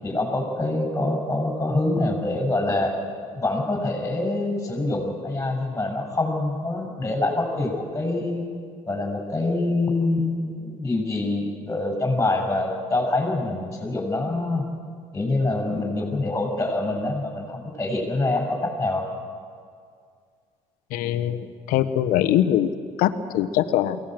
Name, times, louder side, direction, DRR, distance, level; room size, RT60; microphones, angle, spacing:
voice 1, 0.0-3.0 3.3-8.5 8.9-14.6 15.1-19.1, left 2 dB, 20° left, 2 dB, 6.9 m, -25 dB
voice 2, 20.9-22.7 23.0-24.0, left 11 dB, 75° left, 11 dB, 1.3 m, -22 dB
23.0 x 18.0 x 7.8 m, 2.2 s
supercardioid pair, 85°, 15 cm